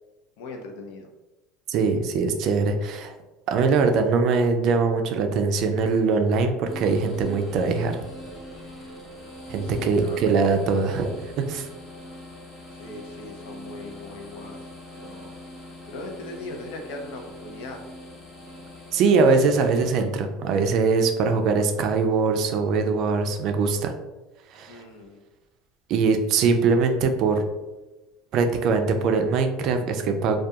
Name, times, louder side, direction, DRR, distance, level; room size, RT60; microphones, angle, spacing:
voice 1, 0.4-1.1 9.6-10.3 12.7-15.3 15.9-17.8 24.7-25.2, left 2 dB, 75° left, 3 dB, 0.5 m, -39 dB
voice 2, 1.7-3.1 3.5-8.0 9.5-11.7 18.9-23.9 24.5-24.8 25.9-27.4 28.3-30.4, right 4 dB, 55° right, 6 dB, 0.3 m, -22 dB
sound 1, 6.7-20.0, left 1 dB, 30° left, 0.9 m, -42 dB
2.3 x 2.2 x 2.7 m, 1.1 s
supercardioid pair, 115°, 0 cm